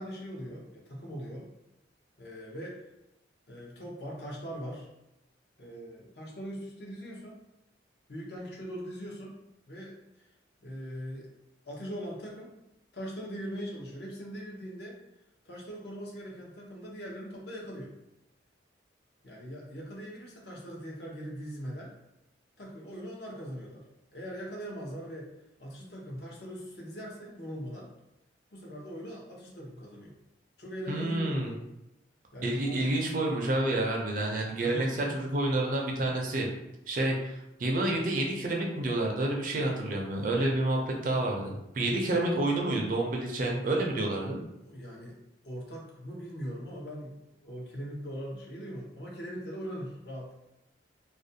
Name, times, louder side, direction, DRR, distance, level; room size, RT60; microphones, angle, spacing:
voice 1, 0.0-1.5 2.2-2.8 3.5-4.9 5.6-7.4 8.1-9.4 9.7-10.3 10.6-11.3 11.6-12.6 12.9-15.0 15.4-17.9 19.2-21.9 22.6-23.8 24.1-25.3 25.6-27.9 28.5-30.1 30.6-31.6 32.3-32.8 34.6-35.3 44.6-45.2 45.4-47.2 47.4-50.4, equal, 60° left, -3 dB, 0.7 m, -41 dB
voice 2, 30.9-31.5 32.4-36.5 36.9-44.4, right 2 dB, 45° right, 0 dB, 0.4 m, -29 dB
2.4 x 2.1 x 2.6 m, 0.88 s
head